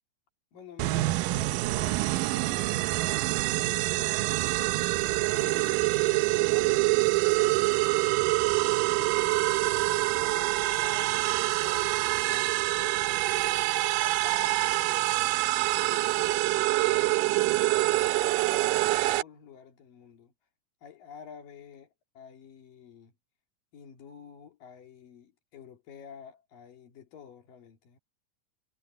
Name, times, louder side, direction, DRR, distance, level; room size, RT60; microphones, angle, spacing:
voice 1, 0.5-4.5 5.1-11.2 11.6-13.4 14.0-15.1 15.7-16.5 16.9-20.3 20.8-23.1 23.7-28.0, left 8 dB, 85° left, 4.3 m, -50 dB
sound 1, 0.8-19.2, right 20 dB, 90° right, 2.3 m, -26 dB
omnidirectional pair, 3.8 m